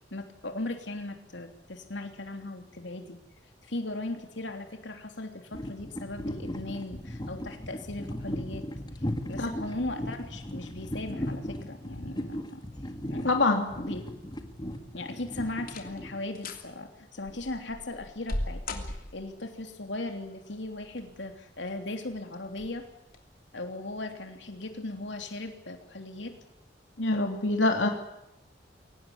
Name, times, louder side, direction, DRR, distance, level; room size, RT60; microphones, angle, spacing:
voice 1, 0.1-3.2 3.6-8.6 9.3-12.6 13.1-13.3 13.8-14.0 14.9-22.9 23.5-26.3, left 2 dB, 75° left, 5 dB, 3.2 m, -38 dB
sound 1, 5.5-16.5, equal, 25° left, 1.9 m, -37 dB
voice 2, 13.2-13.7 27.0-27.9, left 2 dB, 90° left, 3 dB, 2.9 m, -24 dB
sound 2, 14.6-15.1 15.6-16.0 16.3-16.7 17.2-19.4 20.6-21.2 21.7-21.8 22.5-22.7 23.1-23.2, left 1 dB, 50° left, 3.0 m, -37 dB
23.0 x 18.0 x 9.7 m, 0.86 s
head